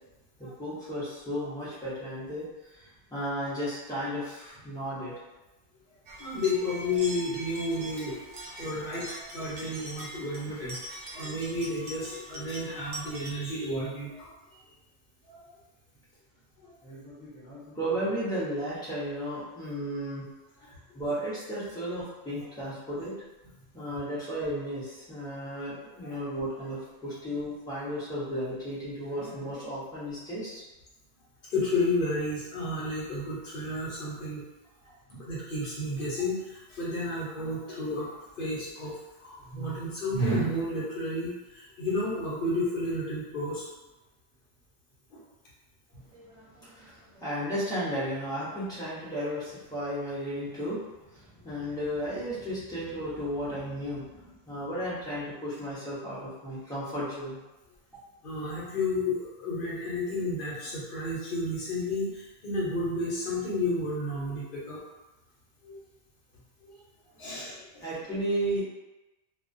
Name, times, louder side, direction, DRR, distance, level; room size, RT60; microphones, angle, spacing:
voice 1, 0.4-5.1 16.8-20.2 20.9-23.1 23.7-30.6 46.1-57.4 67.3-67.5 67.8-68.6, equal, 5° left, -10 dB, 0.5 m, -34 dB
sound 1, 6.1-13.3, right 1 dB, 60° right, 0.6 m, -42 dB
voice 2, 6.2-14.3 15.2-15.4 16.6-16.7 26.0-26.2 31.5-34.4 35.1-38.1 38.4-43.7 45.1-45.2 58.2-64.8 65.6-65.8 66.6-66.7 67.2-67.9, left 1 dB, 50° left, -7 dB, 0.9 m, -32 dB
2.3 x 2.2 x 2.5 m, 1.0 s
omnidirectional pair, 1.4 m